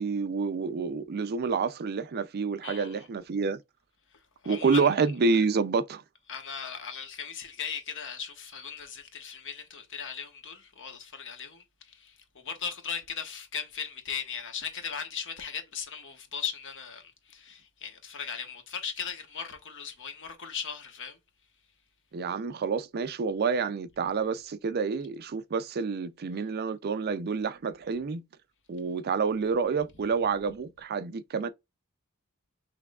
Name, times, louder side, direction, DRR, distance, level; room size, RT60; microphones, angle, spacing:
voice 1, 0.0-3.6 4.5-6.0 22.1-28.2 28.7-31.5, right 5 dB, 45° right, 0.4 m, -28 dB
voice 2, 2.6-3.1 4.4-4.9 5.4-5.5 6.3-21.2, left 7 dB, 60° left, 1.2 m, -38 dB
5.8 x 3.3 x 2.3 m
head